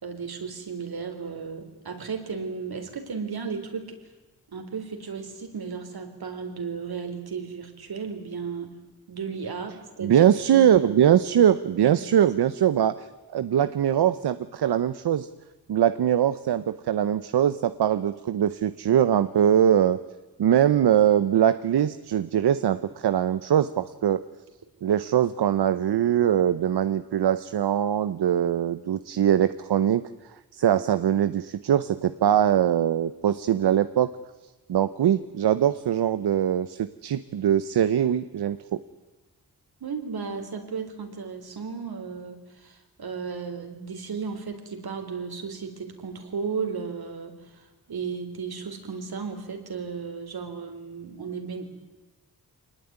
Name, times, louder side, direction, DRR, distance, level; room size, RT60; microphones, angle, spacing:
voice 1, 0.0-4.0 4.5-8.7 9.1-10.3 11.8-12.3 39.8-51.6, right 5 dB, 70° right, 6 dB, 4.0 m, -35 dB
voice 2, 10.0-15.3 15.7-20.0 20.4-24.2 24.8-30.0 30.5-34.1 34.7-38.8, right 10 dB, 85° right, 13 dB, 0.9 m, -22 dB
24.5 x 20.0 x 9.6 m, 1.2 s
wide cardioid pair, 85°, 38 cm